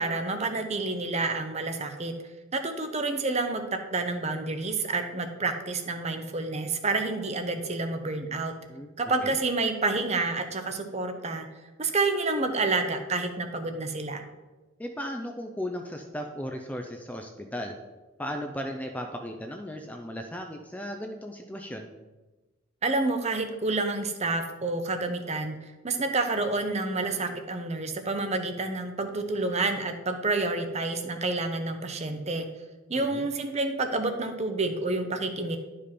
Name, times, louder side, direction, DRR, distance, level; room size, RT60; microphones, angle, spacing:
voice 1, 0.0-2.1 2.5-3.6 3.9-8.5 9.0-11.5 11.8-14.2 22.8-25.6 25.8-32.5 32.9-35.6, right 3 dB, 30° right, 7 dB, 0.8 m, -29 dB
voice 2, 8.7-9.3 14.8-17.8 18.2-21.9 32.9-33.3, equal, 5° left, 4 dB, 0.5 m, -36 dB
11.0 x 5.2 x 4.3 m, 1.2 s
head